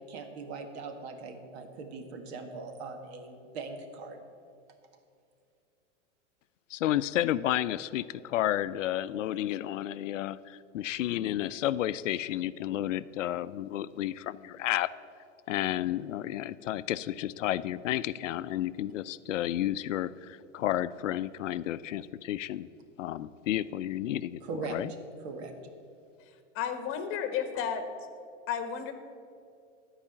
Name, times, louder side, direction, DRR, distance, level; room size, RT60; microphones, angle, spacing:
voice 1, 0.1-4.2 24.4-24.8 25.2-25.5, right 4 dB, 60° right, 6 dB, 1.7 m, -40 dB
voice 2, 6.7-14.9 15.5-22.7 23.0-24.4 24.7-24.9, left 13 dB, 90° left, 16 dB, 0.5 m, -31 dB
voice 3, 26.3-27.8 28.5-28.9, left 8 dB, 35° left, 8 dB, 1.3 m, -33 dB
13.5 x 4.9 x 8.5 m, 2.4 s
hypercardioid pair, 125°, 36 cm